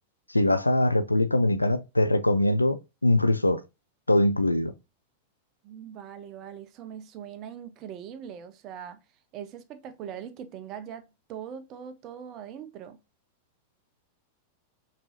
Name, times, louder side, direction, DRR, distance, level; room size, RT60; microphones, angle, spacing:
voice 1, 0.3-3.6 4.1-4.7, left 1 dB, 85° left, 0.3 m, -22 dB
voice 2, 5.6-9.0 9.3-13.0, right 8 dB, 35° right, 0.5 m, -41 dB
5.3 x 2.7 x 2.8 m
figure-of-eight pair, 90°, 0 cm